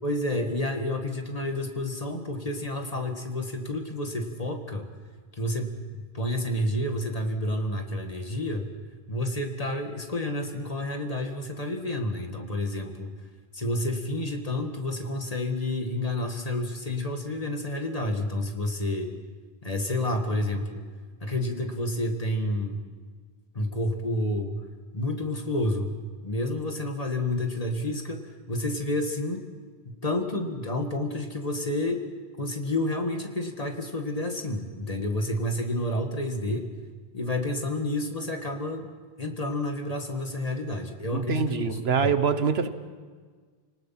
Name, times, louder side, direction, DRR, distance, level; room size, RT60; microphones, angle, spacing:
voice 1, 0.0-4.9 5.3-8.7 9.1-13.1 13.5-19.1 19.6-20.9 21.2-22.8 23.5-24.6 24.9-25.9 26.2-29.4 30.0-32.0 32.4-36.7 37.1-38.9 39.2-42.1, left 1 dB, 35° left, 4 dB, 2.0 m, -30 dB
voice 2, 41.1-42.7, right 6 dB, 80° right, 11 dB, 1.3 m, -24 dB
29.0 x 19.0 x 5.9 m, 1.5 s
omnidirectional pair, 1.0 m